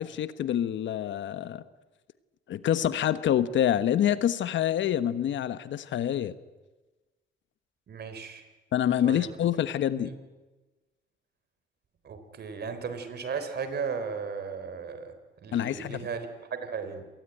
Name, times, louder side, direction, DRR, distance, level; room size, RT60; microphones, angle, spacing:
voice 1, 0.0-1.6 2.5-6.3 8.7-10.1 15.5-16.0, left 10 dB, 70° left, 13 dB, 1.2 m, -26 dB
voice 2, 7.9-8.4 9.0-9.3 10.0-10.2 12.0-15.1 15.4-17.1, right 5 dB, 55° right, 10 dB, 3.7 m, -36 dB
26.5 x 19.0 x 9.2 m, 1.2 s
cardioid pair, 90°, 20 cm